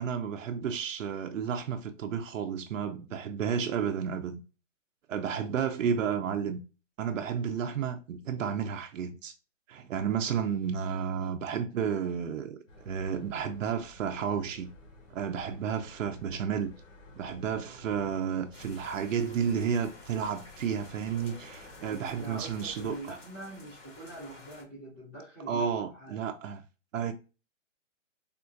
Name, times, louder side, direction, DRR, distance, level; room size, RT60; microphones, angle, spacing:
voice 1, 0.0-4.4 5.1-6.6 7.0-9.3 9.7-14.7 15.1-16.7 17.1-23.0 25.5-26.6 26.9-27.1, right 7 dB, 90° right, 0.6 m, -32 dB
sound 1, 12.7-23.0, left 2 dB, 85° left, 1.2 m, -54 dB
sound 2, 18.5-24.6, left 3 dB, 70° left, 1.8 m, -52 dB
voice 2, 21.9-26.2 26.9-27.1, right 2 dB, 15° left, 0.5 m, -44 dB
3.5 x 2.4 x 2.5 m
hypercardioid pair, 170°, 38 cm